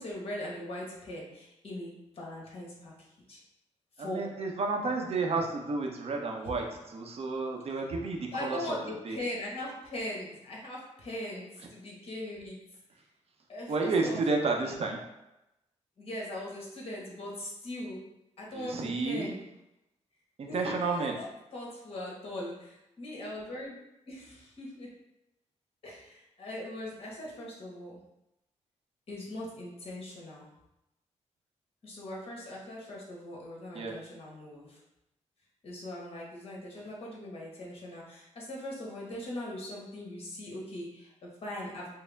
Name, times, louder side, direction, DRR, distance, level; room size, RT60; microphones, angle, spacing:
voice 1, 0.0-2.9 3.3-3.4 4.0-4.3 6.4-6.5 8.3-12.6 13.5-14.2 14.6-14.8 16.0-18.1 18.4-19.4 20.5-23.8 24.1-24.9 25.8-28.0 29.1-30.5 31.8-34.8 35.6-41.9, left 1 dB, 50° left, -3 dB, 1.4 m, -40 dB
voice 2, 4.0-8.8 9.0-9.2 13.7-15.0 18.5-19.3 20.4-21.2 33.7-33.9, right 3 dB, 55° right, 2 dB, 0.7 m, -31 dB
4.5 x 2.1 x 3.4 m, 0.92 s
cardioid pair, 85°, 12 cm